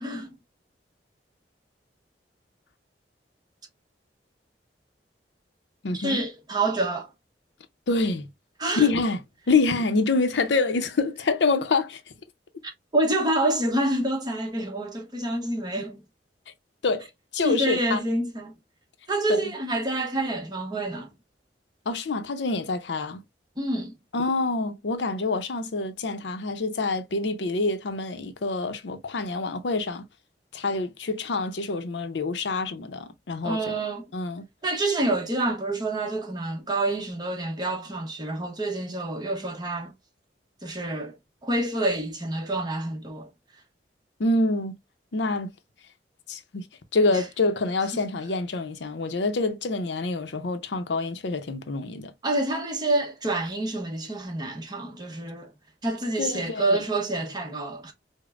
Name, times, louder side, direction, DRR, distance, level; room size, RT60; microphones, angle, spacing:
voice 1, 0.0-0.3 5.9-7.1 8.6-8.9 12.6-16.1 17.4-18.5 19.1-21.1 23.6-23.9 33.4-34.1 34.6-39.9 40.6-41.2 41.4-43.3 47.1-47.2 47.9-48.0 52.2-55.5 55.8-57.9, right 2 dB, 25° right, 0.9 m, -27 dB
voice 2, 5.8-6.2 7.9-8.3 8.8-9.2 9.5-12.0 16.8-17.1 17.3-18.0 19.3-19.5 21.9-23.2 24.1-30.0 30.5-33.8 34.1-34.5 44.2-44.8 45.1-45.5 46.3-46.6 46.9-52.1 56.2-56.8, left 3 dB, 80° left, 0.6 m, -26 dB
5.0 x 2.1 x 2.4 m
head